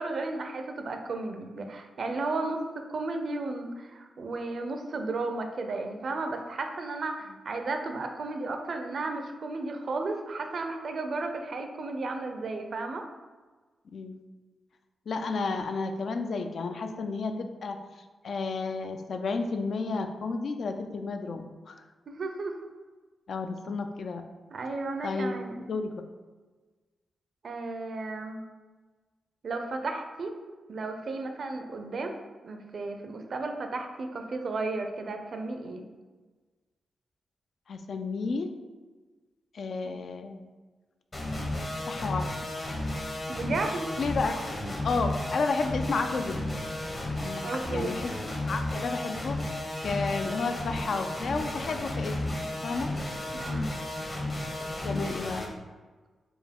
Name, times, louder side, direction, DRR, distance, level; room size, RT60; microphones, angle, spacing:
voice 1, 0.0-13.0 22.1-22.7 24.5-25.7 27.4-28.4 29.4-30.3 30.7-32.1 32.4-35.9 43.3-43.9 47.4-48.0 53.3-53.7, right 3 dB, 60° right, 5 dB, 0.4 m, -34 dB
voice 2, 13.9-14.2 15.1-17.8 18.2-21.8 23.3-24.2 25.0-26.0 37.7-38.5 39.5-40.5 41.9-42.8 44.0-44.4 44.8-46.4 47.2-48.1 48.5-52.4 52.6-52.9 54.8-55.5, left 4 dB, 65° left, 6 dB, 0.3 m, -32 dB
sound 1, 41.1-55.5, left 1 dB, 35° left, 0.9 m, -33 dB
4.3 x 2.3 x 3.5 m, 1.3 s
cardioid pair, 80°, 0 cm